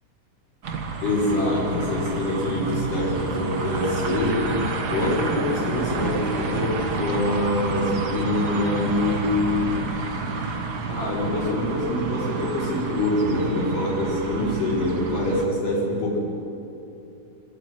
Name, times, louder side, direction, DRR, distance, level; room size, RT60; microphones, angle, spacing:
sound 1, 0.6-15.5, right 4 dB, 45° right, 1.4 m, -30 dB
voice 1, 1.0-4.6 4.9-9.7 10.9-16.2, left 1 dB, 75° left, -4 dB, 6.9 m, -25 dB
25.0 x 13.5 x 9.8 m, 2.7 s
omnidirectional pair, 3.8 m